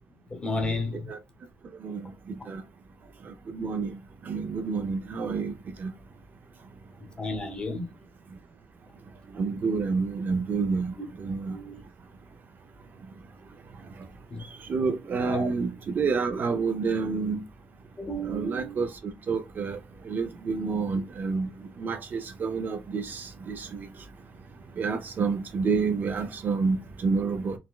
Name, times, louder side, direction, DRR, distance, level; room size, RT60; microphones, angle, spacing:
voice 1, 0.3-1.1 7.2-7.8 11.5-11.8 14.3-14.4 15.2-15.5 18.0-18.8, left 1 dB, 20° left, 0.8 m, -32 dB
voice 2, 3.5-3.9 4.3-5.5 5.8-5.9 9.3-11.6 14.7-17.4 18.2-18.9 19.3-19.8 20.1-21.5 21.8-23.9 24.8-27.6, right 4 dB, 40° right, 0.4 m, -28 dB
4.0 x 2.1 x 2.3 m
cardioid pair, 120°, 5 cm